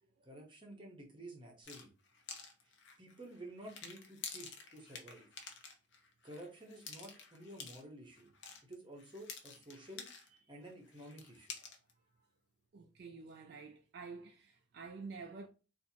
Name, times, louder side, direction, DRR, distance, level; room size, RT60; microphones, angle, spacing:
voice 1, 0.2-1.9 2.6-2.7 3.0-5.3 6.2-8.3 8.6-10.1 10.5-11.5, right 1 dB, 25° right, 0.9 m, -52 dB
sound 1, 1.6-10.4 10.6-11.9, left 5 dB, 60° left, 0.8 m, -50 dB
voice 2, 12.7-15.5, right 4 dB, 50° right, 0.4 m, -49 dB
4.3 x 2.6 x 2.7 m
head